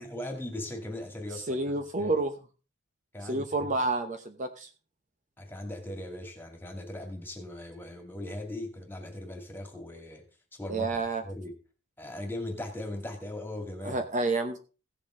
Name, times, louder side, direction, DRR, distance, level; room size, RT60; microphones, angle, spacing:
voice 1, 0.0-1.6 2.0-2.1 3.1-3.7 5.4-10.2 10.5-11.6 12.0-14.0, left 1 dB, 10° left, 4 dB, 2.2 m, -39 dB
voice 2, 1.5-2.3 3.3-4.7 10.7-11.2 13.8-14.6, right 2 dB, 35° right, 6 dB, 0.9 m, -29 dB
16.0 x 7.0 x 3.7 m, 0.34 s
head